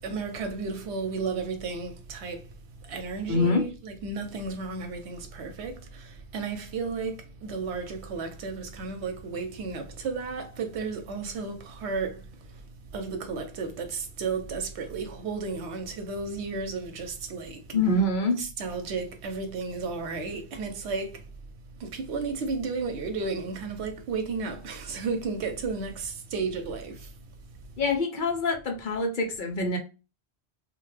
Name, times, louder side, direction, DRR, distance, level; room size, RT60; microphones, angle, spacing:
voice 1, 0.0-17.8 18.4-21.3 21.7-27.8, right 4 dB, 85° right, 0.9 m, -33 dB
voice 2, 3.3-3.7 17.7-18.4 27.8-29.8, left 2 dB, 55° left, 0.7 m, -25 dB
2.4 x 2.2 x 3.1 m
omnidirectional pair, 1.1 m